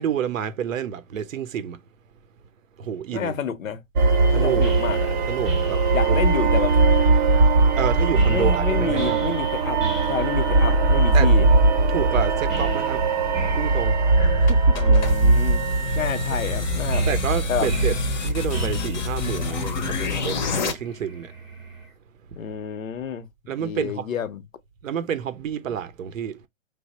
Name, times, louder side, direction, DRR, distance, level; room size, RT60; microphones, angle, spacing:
voice 1, 0.0-1.8 2.8-3.4 4.3-4.6 5.3-6.2 7.8-9.2 11.1-11.3 11.9-13.0 13.6-14.0 14.4-14.9 17.1-17.9 18.2-21.3 23.5-24.0 24.8-26.4, right 8 dB, 75° right, 0.6 m, -29 dB
voice 2, 3.1-3.8 4.3-5.2 5.9-6.8 8.3-11.5 14.7-15.6 15.9-17.1 17.5-17.7 22.4-23.3 23.6-24.4, left 7 dB, 80° left, 0.7 m, -29 dB
sound 1, 3.9-19.2, right 3 dB, 35° right, 0.6 m, -20 dB
sound 2, 4.6-21.9, right 3 dB, ahead, 0.7 m, -34 dB
sound 3, 14.5-20.7, left 5 dB, 35° left, 0.6 m, -28 dB
3.2 x 2.0 x 4.0 m
hypercardioid pair, 145°, 39 cm